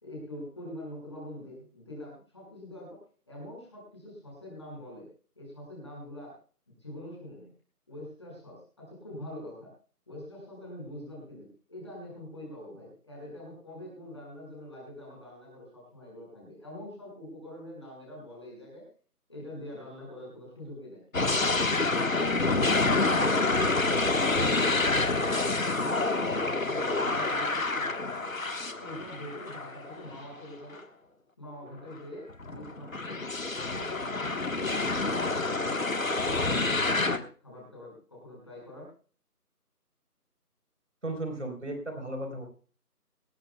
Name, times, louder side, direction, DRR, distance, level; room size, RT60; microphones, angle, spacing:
voice 1, 0.0-3.0 3.3-5.1 5.4-6.4 6.8-7.5 7.9-9.7 10.1-18.9 19.3-21.0 25.8-28.3 28.8-30.8 31.4-33.2 33.6-38.9, left 1 dB, 20° left, -3 dB, 5.2 m, -44 dB
sound 1, 21.1-30.2 30.7-30.8 32.3-37.2, left 3 dB, 55° left, 1.4 m, -27 dB
voice 2, 41.0-42.4, right 1 dB, 50° right, 4 dB, 4.0 m, -35 dB
20.5 x 17.5 x 2.2 m, 0.40 s
figure-of-eight pair, 180°, 47 cm